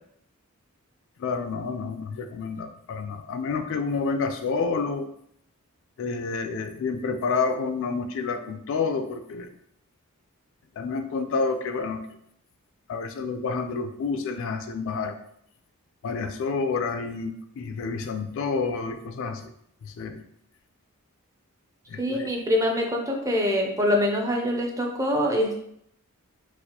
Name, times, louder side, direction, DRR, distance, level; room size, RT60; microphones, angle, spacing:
voice 1, 1.2-5.1 6.0-9.5 10.8-12.0 12.9-15.2 16.0-19.5 19.8-20.2 21.9-22.3, left 4 dB, 60° left, 7 dB, 0.3 m, -29 dB
voice 2, 22.0-25.6, left 1 dB, 15° right, 2 dB, 0.4 m, -24 dB
4.1 x 2.4 x 2.7 m, 0.71 s
head